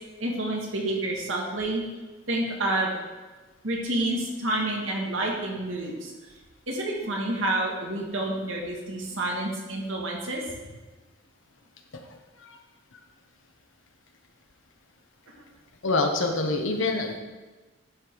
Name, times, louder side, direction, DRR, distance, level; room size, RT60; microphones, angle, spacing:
voice 1, 0.2-1.8 2.3-3.0 3.6-6.1 6.7-10.4 15.4-15.5, right 1 dB, 90° right, -1 dB, 2.0 m, -29 dB
voice 2, 15.8-17.2, left 3 dB, 80° left, 3 dB, 1.2 m, -26 dB
11.5 x 5.4 x 4.8 m, 1.2 s
head